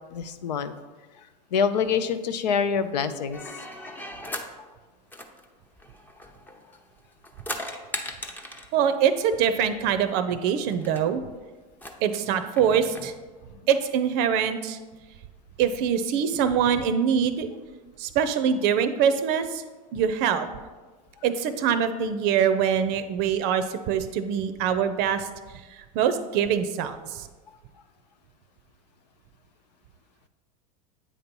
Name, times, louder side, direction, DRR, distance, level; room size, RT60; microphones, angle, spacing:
voice 1, 0.1-0.7 1.5-3.4, left 6 dB, 90° left, 11 dB, 0.5 m, -25 dB
sound 1, 3.3-4.5 5.1-6.8 7.1-8.8 9.9-10.0 10.2-10.3 10.7-11.0 11.7-13.1, left 1 dB, 10° left, 0.6 m, -38 dB
voice 2, 8.7-11.2 12.0-13.1 13.7-14.8 15.6-17.5 18.0-19.6 19.9-20.5 21.2-25.3 25.8-27.3, right 8 dB, 55° right, 10 dB, 0.5 m, -24 dB
8.4 x 2.9 x 5.3 m, 1.3 s
hypercardioid pair, 110°, 21 cm